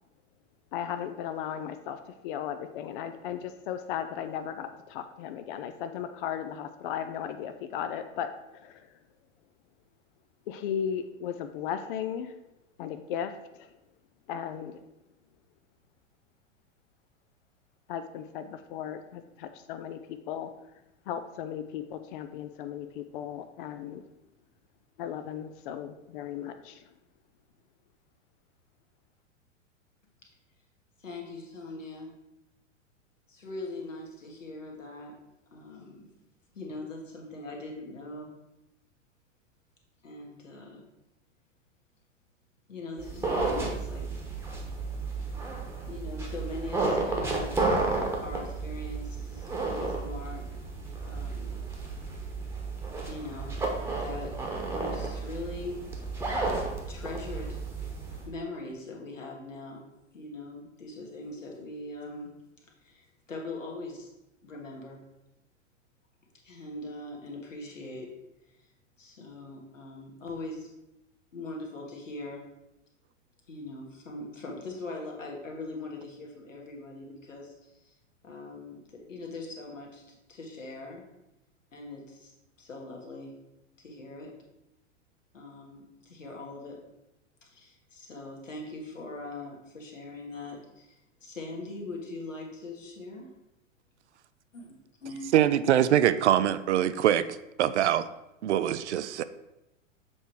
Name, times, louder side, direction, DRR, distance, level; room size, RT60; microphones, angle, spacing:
voice 1, 0.7-8.9 10.5-12.3 12.8-13.7 14.3-14.8 17.9-20.5 21.1-24.0 25.0-26.8, left 9 dB, 45° left, 9 dB, 0.5 m, -36 dB
voice 2, 31.0-32.1 33.3-35.2 35.5-36.1 36.5-38.3 40.0-40.8 42.7-44.1 45.9-47.6 48.2-50.5 51.0-51.6 53.0-54.4 54.7-55.8 56.9-57.6 58.3-62.3 62.8-64.1 64.4-65.0 66.4-68.1 69.0-70.7 71.3-72.5 73.5-77.9 78.2-81.1 81.7-83.4 83.8-84.3 85.3-86.8 87.4-93.3 95.0-95.3, left 2 dB, 80° left, -1 dB, 1.7 m, -41 dB
sound 1, 43.0-58.3, right 3 dB, 5° right, 1.1 m, -32 dB
voice 3, 95.3-97.3 97.6-98.0 98.4-99.2, right 11 dB, 65° right, 14 dB, 0.5 m, -23 dB
7.2 x 3.3 x 4.6 m, 0.93 s
figure-of-eight pair, 100°, 38 cm